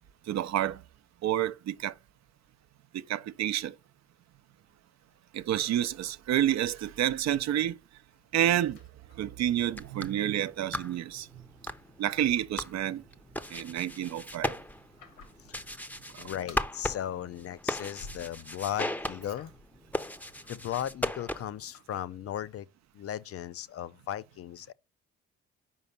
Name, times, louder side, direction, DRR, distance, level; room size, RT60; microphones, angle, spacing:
voice 1, 0.3-0.8 1.2-1.9 2.9-3.7 5.3-7.8 8.3-8.8 9.2-11.3 12.0-13.0 13.5-14.6, right 11 dB, 55° right, 0.6 m, -29 dB
sound 1, 8.1-9.7 9.9-11.3 11.7-12.8 13.1-15.7 15.9-16.8 17.1-18.5 18.8-19.8 20.2-21.8, left 3 dB, 85° left, 1.6 m, -55 dB
sound 2, 9.6-21.7, left 1 dB, 5° left, 0.6 m, -38 dB
voice 2, 16.2-19.5 20.5-22.7 22.9-24.7, left 11 dB, 45° left, 0.5 m, -36 dB
5.5 x 4.9 x 5.5 m
supercardioid pair, 60°, 32 cm